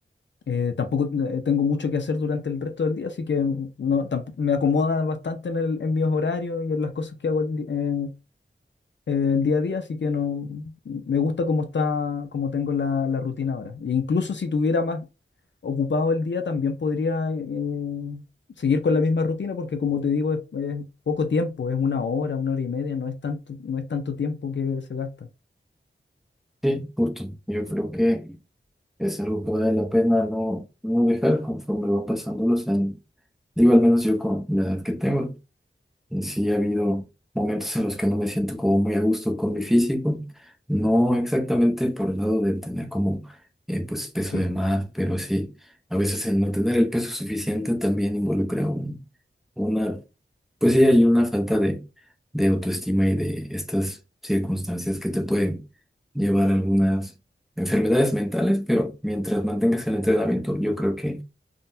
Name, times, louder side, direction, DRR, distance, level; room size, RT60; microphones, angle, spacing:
voice 1, 0.5-8.1 9.1-15.1 15.6-18.2 18.6-25.1 44.3-44.5, left 5 dB, 65° left, 0.5 m, -25 dB
voice 2, 26.6-28.4 29.0-33.0 33.6-35.4 36.1-37.0 37.3-40.3 40.7-43.3 43.7-45.5 45.9-49.0 49.6-50.0 50.6-51.8 52.3-54.0 54.2-55.6 56.1-57.1 57.6-61.2, equal, ahead, 0.6 m, -23 dB
3.7 x 2.1 x 2.6 m
wide cardioid pair, 55°, 21 cm